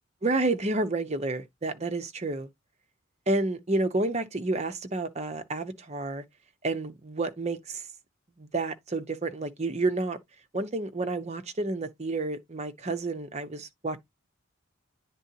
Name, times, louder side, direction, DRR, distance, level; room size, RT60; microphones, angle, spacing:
voice 1, 0.2-2.5 3.3-6.2 6.6-7.8 8.4-10.2 10.5-14.0, right 2 dB, 35° right, 0.9 m, -30 dB
9.8 x 3.7 x 2.8 m
head